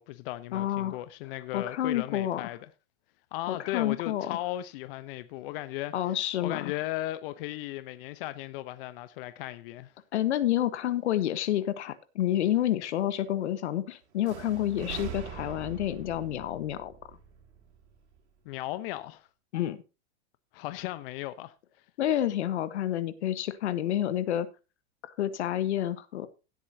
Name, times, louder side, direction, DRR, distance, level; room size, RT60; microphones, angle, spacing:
voice 1, 0.0-2.6 3.3-9.9 18.4-19.3 20.5-21.5, left 15 dB, 55° left, 0.9 m, -36 dB
voice 2, 0.5-1.0 1.5-2.5 3.5-4.4 5.9-6.7 10.1-16.9 19.5-19.8 22.0-24.5 25.0-26.3, left 12 dB, 85° left, 1.4 m, -29 dB
sound 1, 14.2-18.2, right 8 dB, 80° right, 3.4 m, -42 dB
16.5 x 8.3 x 2.8 m
supercardioid pair, 140°, 34 cm